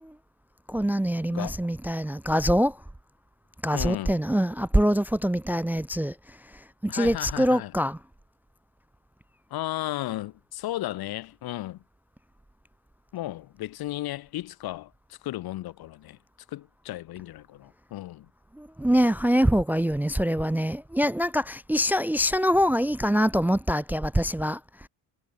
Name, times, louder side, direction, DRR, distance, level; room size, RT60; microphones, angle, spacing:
voice 1, 0.7-2.8 3.6-6.4 6.8-8.0 18.6-24.9, equal, 5° right, 0.4 m, -24 dB
voice 2, 3.7-4.2 6.9-7.7 9.5-11.8 13.1-16.2 16.5-18.3, left 15 dB, 65° left, 0.9 m, -34 dB
cardioid pair, 135°, 40 cm